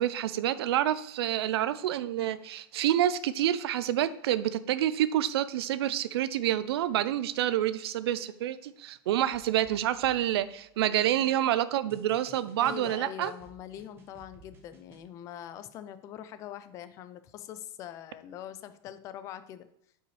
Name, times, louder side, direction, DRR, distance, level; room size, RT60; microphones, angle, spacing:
voice 1, 0.0-13.3, right 12 dB, 80° right, 15 dB, 0.5 m, -28 dB
sound 1, 9.3-11.2 11.9-15.0, right 2 dB, 15° right, 0.9 m, -56 dB
voice 2, 11.0-11.3 12.6-19.7, left 10 dB, 25° left, 12 dB, 0.4 m, -43 dB
8.0 x 5.6 x 3.2 m, 0.75 s
supercardioid pair, 170°, 13 cm